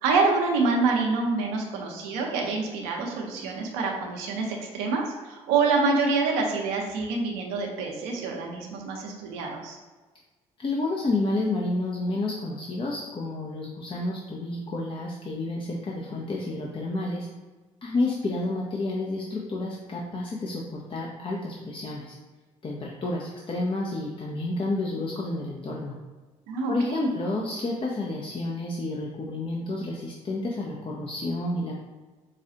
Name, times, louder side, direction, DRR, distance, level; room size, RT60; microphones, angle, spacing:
voice 1, 0.0-9.8 26.5-27.1, right 4 dB, 70° right, 0 dB, 0.7 m, -26 dB
voice 2, 10.6-17.3 17.8-22.2 22.6-26.0 26.7-31.7, left 2 dB, 30° left, -2 dB, 0.6 m, -30 dB
4.9 x 2.3 x 2.8 m, 1.3 s
hypercardioid pair, 50°, 17 cm